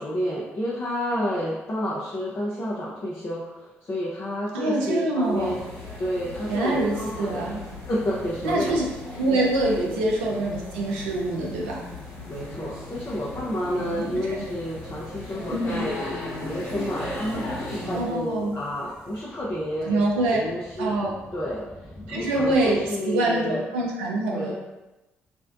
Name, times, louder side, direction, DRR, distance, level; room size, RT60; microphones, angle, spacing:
voice 1, 0.0-5.6 6.0-7.5 7.9-8.8 9.8-9.9 12.3-16.0 16.4-20.0 20.3-20.9 21.3-23.6 24.3-24.5, equal, 30° left, -6 dB, 0.5 m, -30 dB
voice 2, 4.5-5.6 6.5-7.6 8.4-8.8 9.2-11.8 13.8-14.5 15.5-15.9 17.8-18.6 19.9-20.4 20.8-21.1 22.1-24.5, right 2 dB, 75° right, -2 dB, 0.4 m, -25 dB
sound 1, 5.2-18.2, left 1 dB, 70° left, 0.9 m, -37 dB
sound 2, 17.6-22.9, left 1 dB, ahead, 0.8 m, -47 dB
2.5 x 2.1 x 2.4 m, 1.0 s
figure-of-eight pair, 45°, 6 cm